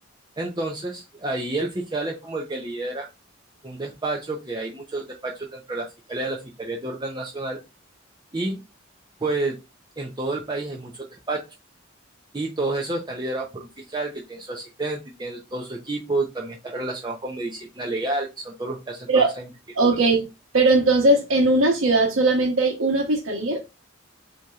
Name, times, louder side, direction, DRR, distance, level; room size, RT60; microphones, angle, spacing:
voice 1, 0.4-3.1 3.6-7.6 8.3-8.6 9.2-9.6 10.0-11.4 12.3-19.5, right 2 dB, 20° right, 0.6 m, -30 dB
voice 2, 19.8-20.3 20.5-23.7, right 2 dB, 90° right, 1.0 m, -19 dB
7.8 x 2.8 x 2.4 m
head